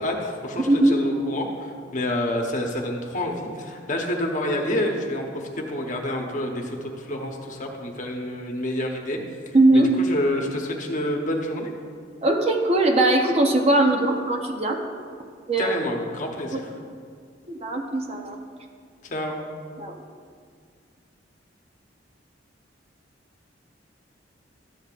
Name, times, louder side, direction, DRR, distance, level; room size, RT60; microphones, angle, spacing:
voice 1, 0.0-9.2 9.5-11.7 15.6-16.7 19.0-19.4, left 1 dB, 40° left, 1 dB, 1.0 m, -28 dB
voice 2, 9.5-9.9 12.2-14.8 15.5-15.8 16.5-16.6 17.5-18.4 19.8-19.9, right 2 dB, 35° right, 3 dB, 0.7 m, -20 dB
12.5 x 8.5 x 2.5 m, 2.1 s
head